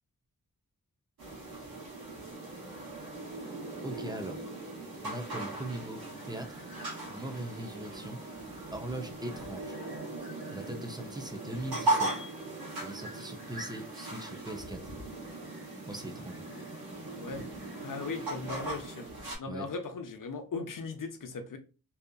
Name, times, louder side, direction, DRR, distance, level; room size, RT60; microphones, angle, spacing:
sound 1, 1.2-19.4, right 2 dB, 85° right, 1.0 m, -38 dB
voice 1, 3.8-4.5 5.0-6.6 7.1-8.3 8.7-9.8 10.5-12.2 12.8-14.8 15.9-16.4 19.5-19.7, right 1 dB, 10° right, 0.5 m, -40 dB
voice 2, 17.2-17.5 17.8-19.1 19.4-21.6, left 4 dB, 65° left, 0.6 m, -38 dB
2.7 x 2.4 x 2.3 m
wide cardioid pair, 90°, 35 cm